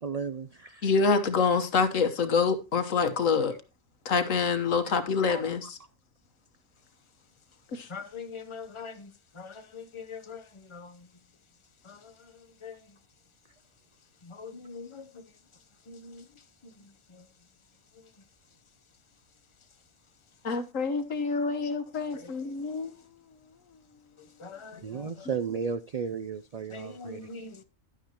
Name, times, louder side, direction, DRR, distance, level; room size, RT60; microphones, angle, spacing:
voice 1, 0.0-0.9 4.7-4.9 5.3-5.4 24.8-27.2, right 6 dB, 75° right, 0.3 m, -34 dB
voice 2, 0.8-3.5 4.0-5.8 7.7-7.9 20.4-22.9 24.7-24.8, left 5 dB, 75° left, 1.6 m, -26 dB
voice 3, 7.9-11.1 11.8-13.0 14.2-15.2 15.9-17.3 17.9-18.1 22.1-22.4 24.2-25.3 26.7-27.6, left 5 dB, 25° left, 0.8 m, -44 dB
12.0 x 9.0 x 2.9 m
omnidirectional pair, 1.3 m